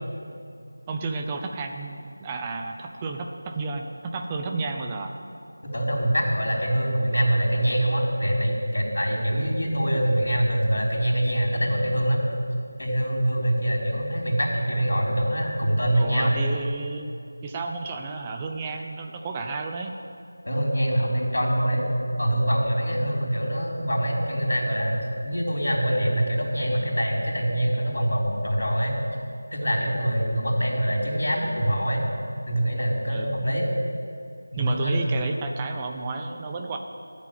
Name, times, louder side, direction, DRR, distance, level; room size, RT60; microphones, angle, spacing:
voice 1, 0.9-5.1 15.9-17.1 17.4-20.0 23.0-23.1 29.8-29.9 33.1-33.4 34.6-36.8, right 3 dB, 15° right, 3 dB, 0.6 m, -32 dB
voice 2, 5.7-12.2 12.8-16.3 20.4-21.9 22.2-29.0 29.5-32.0 32.5-33.7 34.5-35.3, right 1 dB, 70° left, -2 dB, 4.2 m, -24 dB
14.0 x 7.4 x 9.1 m, 2.4 s
figure-of-eight pair, 170°, 0 cm